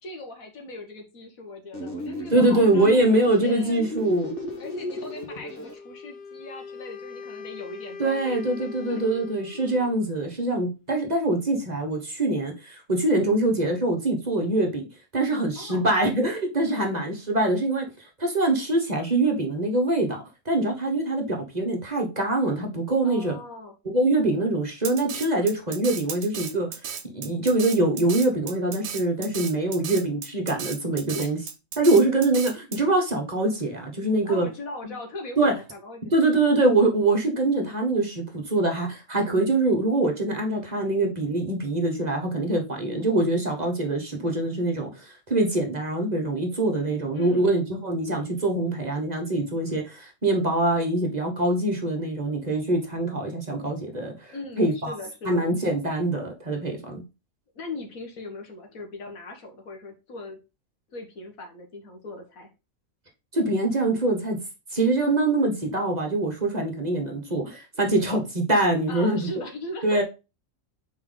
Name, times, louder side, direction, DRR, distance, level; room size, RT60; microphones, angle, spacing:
voice 1, 0.0-3.8 4.6-9.0 15.6-15.9 16.7-16.8 23.0-23.7 31.1-31.3 34.3-36.4 47.1-47.6 54.3-55.5 57.6-60.4 60.9-62.5 68.9-70.0, left 2 dB, 85° left, 1.9 m, -39 dB
sound 1, 1.7-5.7, left 1 dB, 45° left, 1.7 m, -36 dB
voice 2, 2.3-4.3 8.0-14.8 15.1-17.8 18.2-20.2 20.4-23.4 23.8-26.7 27.1-31.4 31.8-34.5 35.4-35.5 36.1-54.9 55.2-57.0 63.3-64.4 64.7-69.3 69.8-70.0, right 2 dB, 30° right, 1.3 m, -24 dB
Wind instrument woodwind instrument, 5.7-10.0, left 5 dB, 60° left, 0.8 m, -41 dB
Drum kit, 24.8-32.8, right 7 dB, 80° right, 1.2 m, -35 dB
5.8 x 4.3 x 3.9 m
omnidirectional pair, 1.4 m